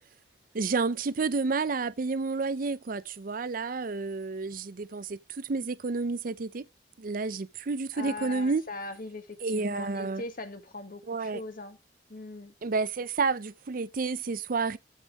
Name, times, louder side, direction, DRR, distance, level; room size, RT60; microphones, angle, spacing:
voice 1, 0.5-6.7 7.0-8.6 9.4-10.2 11.1-11.4 12.6-14.8, right 4 dB, 50° right, 0.5 m, -30 dB
voice 2, 7.9-11.8 12.1-12.5, left 2 dB, 55° left, 1.7 m, -40 dB
14.0 x 5.4 x 3.5 m
head